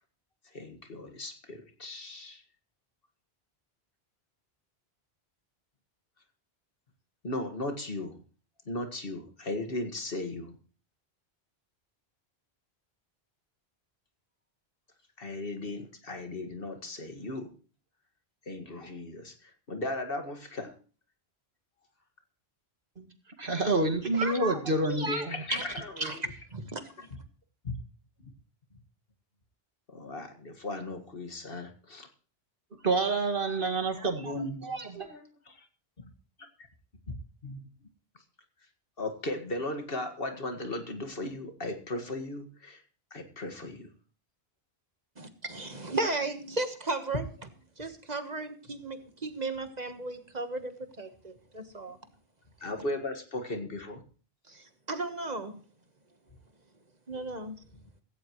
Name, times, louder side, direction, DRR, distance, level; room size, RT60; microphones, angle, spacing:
voice 1, 0.5-2.4 7.2-8.2 8.7-10.6 15.2-17.5 18.5-20.7 25.3-26.1 27.6-27.7 28.2-28.3 29.9-32.1 35.0-35.7 36.0-36.1 37.4-37.6 39.0-42.8 43.1-43.9 52.6-54.0, left 2 dB, 60° left, 6 dB, 2.1 m, -37 dB
voice 2, 23.4-25.4 32.8-35.1, right 2 dB, 55° right, 5 dB, 2.2 m, -28 dB
voice 3, 26.0-26.9 45.2-47.2 47.8-52.0 54.5-55.6 57.1-57.6, right 2 dB, 40° right, 7 dB, 1.5 m, -35 dB
16.0 x 16.0 x 3.1 m, 0.38 s
omnidirectional pair, 1.1 m